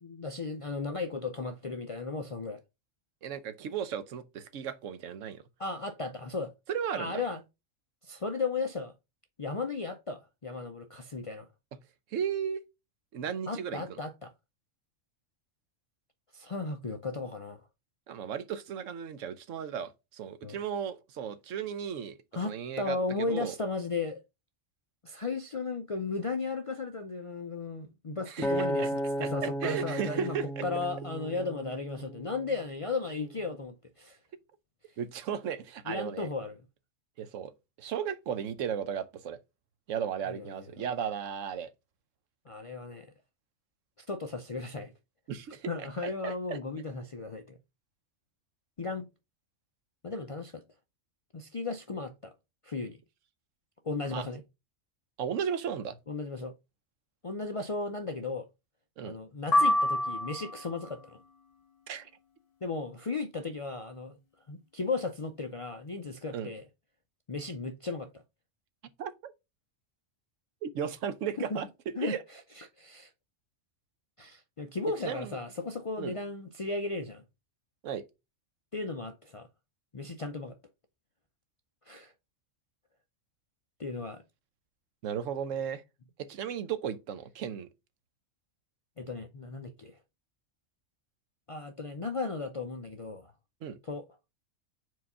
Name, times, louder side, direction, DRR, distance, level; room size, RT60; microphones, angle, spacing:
voice 1, 0.0-2.6 5.6-6.5 6.9-7.4 8.0-8.9 9.4-11.5 13.5-14.3 16.3-17.7 20.4-20.6 22.3-24.2 25.0-30.4 30.6-34.2 35.9-36.6 40.3-40.5 42.5-43.1 44.0-44.9 45.7-47.6 48.8-49.1 50.0-50.6 51.3-52.3 52.6-53.0 53.8-54.4 56.1-56.5 57.2-58.5 59.0-61.2 62.6-64.2 64.5-66.6 67.3-68.1 71.4-71.6 72.0-73.1 74.2-77.2 78.7-79.5 79.9-80.6 81.9-82.1 83.8-84.2 89.0-90.0 91.5-93.3 93.8-94.1, left 3 dB, 50° left, 0.4 m, -35 dB
voice 2, 3.2-5.4 6.7-7.2 12.1-12.6 13.1-13.8 18.1-22.2 22.5-23.5 28.3-28.9 29.2-30.6 35.0-36.3 37.2-37.5 37.8-39.4 39.9-41.7 45.3-45.9 46.2-46.6 54.1-54.3 55.2-56.0 59.0-59.2 61.9-62.1 66.3-66.5 69.0-69.3 70.6-71.7 72.0-72.2 75.0-75.4 76.0-76.2 77.8-78.1 85.0-85.8 86.2-87.7 93.6-93.8, right 8 dB, 85° right, 1.1 m, -35 dB
Acoustic guitar, 28.4-32.8 33.4-33.6, right 1 dB, ahead, 1.1 m, -34 dB
sound 1, 59.5-60.8, left 1 dB, 30° left, 1.3 m, -26 dB
4.7 x 4.0 x 5.4 m
omnidirectional pair, 1.3 m